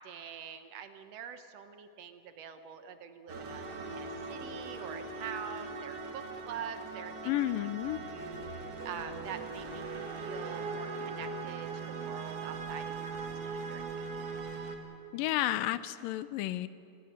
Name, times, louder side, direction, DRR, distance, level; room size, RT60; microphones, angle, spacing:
voice 1, 0.0-3.6 3.9-14.2, right 8 dB, 65° right, 9 dB, 1.7 m, -45 dB
sound 1, 3.3-14.8, right 4 dB, 50° right, 2.7 m, -40 dB
voice 2, 7.3-8.0 15.1-16.7, left 14 dB, 80° left, 15 dB, 2.4 m, -31 dB
sound 2, 8.2-8.5 8.8-9.7 12.5-12.7 13.0-13.3 13.6-14.5, left 1 dB, 50° left, 9.4 m, -58 dB
28.5 x 20.0 x 6.6 m, 2.6 s
omnidirectional pair, 4.0 m